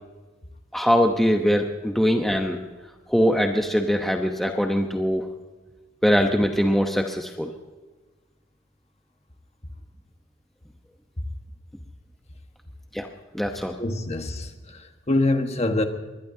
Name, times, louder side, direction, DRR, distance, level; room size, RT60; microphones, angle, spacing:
voice 1, 0.7-2.6 3.1-5.3 6.0-7.5 12.9-13.1 13.3-13.8, equal, ahead, 3 dB, 0.9 m, -22 dB
voice 2, 13.8-15.8, left 2 dB, 35° left, 5 dB, 1.4 m, -25 dB
22.0 x 20.5 x 2.8 m, 1.3 s
head